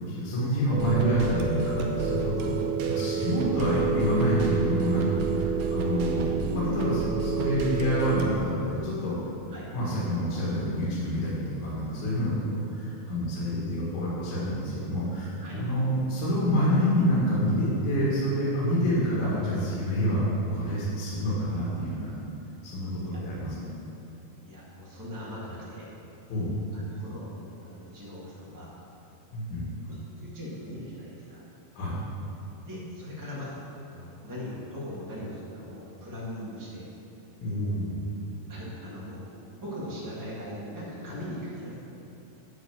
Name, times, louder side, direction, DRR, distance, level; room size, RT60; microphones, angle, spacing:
voice 1, 0.0-9.2 9.7-12.3 12.8-20.2 20.5-22.1 22.6-23.6 26.3-26.6 29.3-29.7 31.7-31.9 37.4-38.1, equal, 60° left, -8 dB, 3.2 m, -27 dB
sound 1, 0.7-8.3, right 6 dB, 85° right, 2.8 m, -29 dB
voice 2, 24.4-25.9 26.7-28.7 29.8-31.4 32.5-33.6 33.9-36.9 38.5-39.2 39.5-41.8, left 1 dB, 20° right, -7 dB, 0.5 m, -40 dB
10.0 x 4.6 x 7.4 m, 2.8 s
omnidirectional pair, 4.3 m